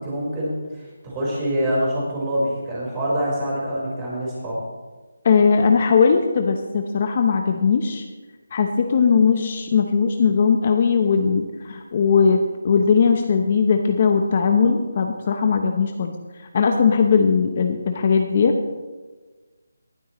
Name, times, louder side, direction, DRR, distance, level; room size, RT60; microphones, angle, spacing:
voice 1, 0.0-4.6, equal, 15° right, -6 dB, 4.5 m, -25 dB
voice 2, 5.2-8.0 8.5-16.1 16.5-18.6, left 5 dB, 35° left, 4 dB, 0.9 m, -19 dB
19.0 x 12.0 x 3.1 m, 1.3 s
figure-of-eight pair, 170°, 0 cm